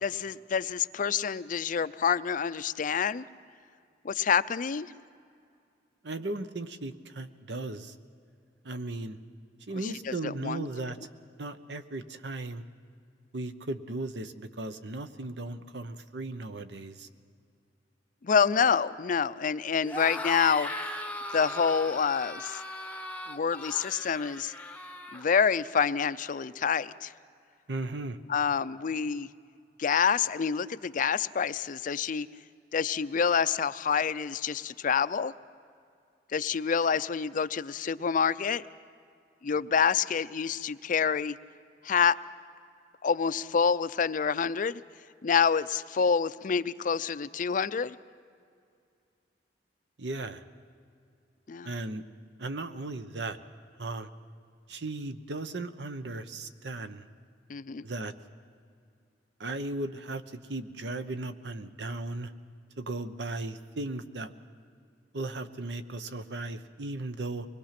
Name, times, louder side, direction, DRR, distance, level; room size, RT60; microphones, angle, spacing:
voice 1, 0.0-3.2 4.0-4.9 9.8-10.7 18.2-20.7 21.3-22.6 23.3-24.5 25.1-27.1 28.3-29.3 29.8-32.3 32.7-35.3 36.3-38.6 39.4-41.4 41.8-42.2 43.0-44.8 45.2-48.0 51.5-51.7 57.5-57.9, left 6 dB, 50° left, 15 dB, 0.4 m, -27 dB
voice 2, 6.0-8.0 8.6-9.2 9.7-11.0 11.4-12.6 13.3-17.1 27.7-28.2 50.0-50.4 51.6-52.0 52.4-53.4 53.8-54.1 54.7-57.0 57.8-58.1 59.4-62.3 62.8-64.3 65.1-67.5, right 2 dB, 75° right, 10 dB, 1.0 m, -36 dB
sound 1, 19.8-25.3, left 1 dB, 10° left, 0.8 m, -38 dB
24.5 x 20.5 x 5.9 m, 2.3 s
head